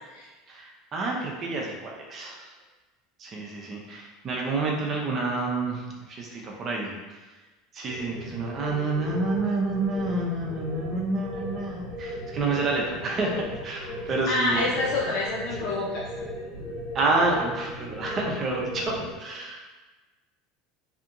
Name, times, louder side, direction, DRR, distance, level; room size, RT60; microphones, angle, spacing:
voice 1, 0.5-2.5 3.2-7.3 7.7-14.7 15.6-15.7 16.9-19.6, right 3 dB, 40° right, -1 dB, 0.6 m, -29 dB
sound 1, 7.9-19.1, equal, 85° left, 0.9 m, -37 dB
voice 2, 14.3-16.0, left 2 dB, 60° left, -5 dB, 0.5 m, -27 dB
2.8 x 2.5 x 2.5 m, 1.2 s
hypercardioid pair, 75°, 0 cm